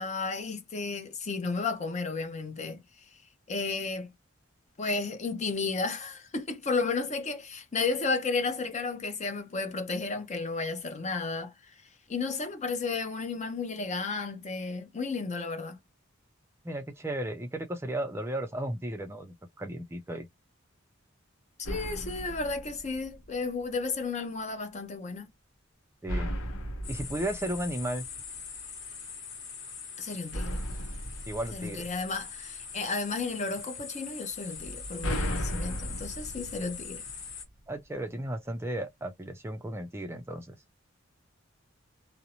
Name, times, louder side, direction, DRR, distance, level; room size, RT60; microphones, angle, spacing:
voice 1, 0.0-3.1 3.5-4.1 4.8-11.5 12.1-15.8 21.6-25.3 30.0-30.6 31.5-37.0, left 4 dB, 35° left, 0.6 m, -33 dB
voice 2, 16.6-20.3 26.0-26.3 26.9-28.1 31.3-31.9 37.7-40.6, right 1 dB, 10° right, 0.4 m, -34 dB
sound 1, 21.6-23.5 26.1-28.5 30.3-32.6 34.5-37.6, equal, 80° left, 0.8 m, -36 dB
sound 2, 26.8-37.5, left 6 dB, 65° left, 1.1 m, -43 dB
2.5 x 2.0 x 2.8 m
head